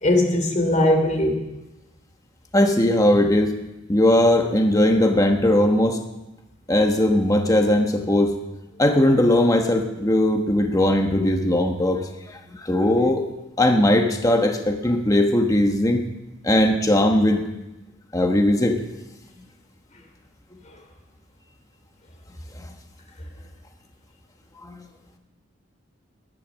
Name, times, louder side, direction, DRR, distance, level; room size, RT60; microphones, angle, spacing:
voice 1, 0.0-1.4, left 1 dB, 40° left, 4 dB, 3.0 m, -20 dB
voice 2, 2.5-3.6 3.9-6.0 6.7-8.4 8.8-12.0 12.6-13.2 13.6-16.0 16.4-17.5 18.1-18.8 22.6-22.7 24.6-24.8, left 1 dB, 20° left, 4 dB, 1.2 m, -19 dB
20.5 x 10.5 x 6.3 m, 0.99 s
head